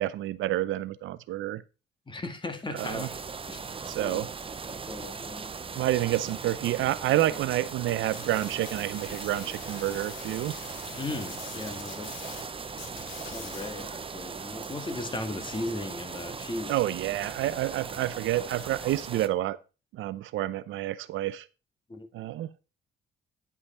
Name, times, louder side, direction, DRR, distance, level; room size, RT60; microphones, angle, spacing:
voice 1, 0.0-1.6 2.7-3.1 3.9-4.3 5.8-10.5 16.7-19.6 19.9-21.5 22.1-22.6, right 14 dB, 80° right, 0.6 m, -29 dB
voice 2, 2.1-3.1 3.5-4.2 4.7-5.5 11.0-12.2 12.9-13.0 13.3-16.7 21.9-22.1, left 2 dB, 25° left, 1.8 m, -37 dB
sound 1, 2.8-19.3, right 5 dB, 25° right, 0.8 m, -39 dB
sound 2, 8.1-12.4 12.7-13.9, left 6 dB, 85° left, 2.3 m, -45 dB
9.7 x 5.6 x 4.3 m
cardioid pair, 90°, 20 cm